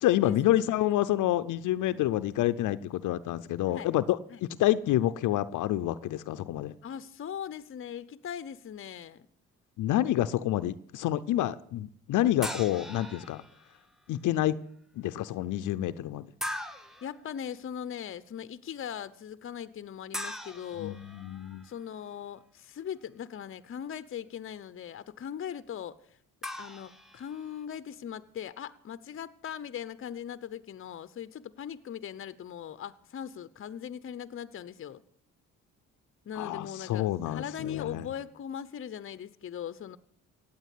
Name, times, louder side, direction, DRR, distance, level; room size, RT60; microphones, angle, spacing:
voice 1, 0.0-6.7 9.8-13.4 14.1-14.6 15.0-16.3 20.8-21.6 36.4-38.1, left 13 dB, 80° left, 0.6 m, -28 dB
voice 2, 6.8-9.3 17.0-21.0 21.6-26.2 26.6-35.0 36.2-40.0, left 9 dB, 45° left, 0.8 m, -40 dB
sound 1, 12.4-13.7 16.4-17.1 20.1-21.7 26.4-27.6, left 1 dB, ahead, 1.5 m, -40 dB
16.5 x 8.8 x 8.4 m
cardioid pair, 90°, 30 cm